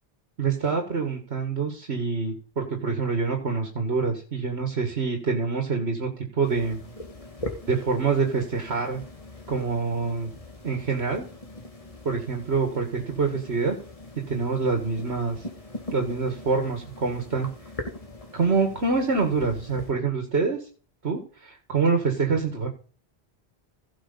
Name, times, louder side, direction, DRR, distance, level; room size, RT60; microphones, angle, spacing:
voice 1, 0.4-6.8 7.7-9.0 9.5-10.3 10.6-11.3 12.1-13.8 14.3-15.5 15.9-17.5 18.3-20.6 21.0-22.7, right 4 dB, 75° right, 3 dB, 2.0 m, -26 dB
sound 1, 6.4-19.9, left 1 dB, 35° left, 2.0 m, -41 dB
16.0 x 6.3 x 3.9 m, 0.40 s
omnidirectional pair, 1.1 m